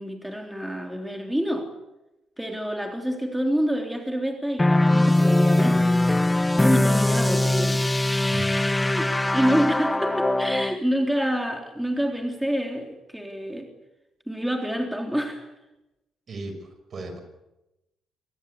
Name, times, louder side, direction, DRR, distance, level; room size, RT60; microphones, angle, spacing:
voice 1, 0.0-1.7 2.4-5.9 6.6-7.8 8.7-13.7 14.3-15.5, equal, 5° right, 3 dB, 3.5 m, -27 dB
sound 1, 4.6-10.8, left 1 dB, 15° left, 0.8 m, -21 dB
voice 2, 8.3-8.7 16.3-17.2, right 2 dB, 50° right, 7 dB, 6.1 m, -36 dB
25.0 x 19.5 x 8.5 m, 0.96 s
cardioid pair, 90°, 0 cm